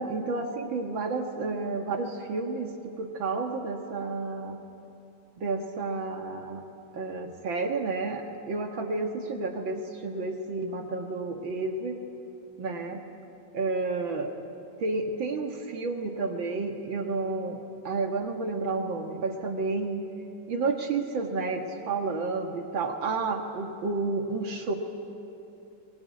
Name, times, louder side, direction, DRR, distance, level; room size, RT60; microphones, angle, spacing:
voice 1, 0.0-4.6 5.4-6.6 6.9-12.0 12.6-13.0 13.5-14.3 14.8-20.0 20.5-24.7, right 3 dB, 65° right, 3 dB, 2.3 m, -31 dB
24.0 x 20.5 x 9.5 m, 2.8 s
omnidirectional pair, 2.3 m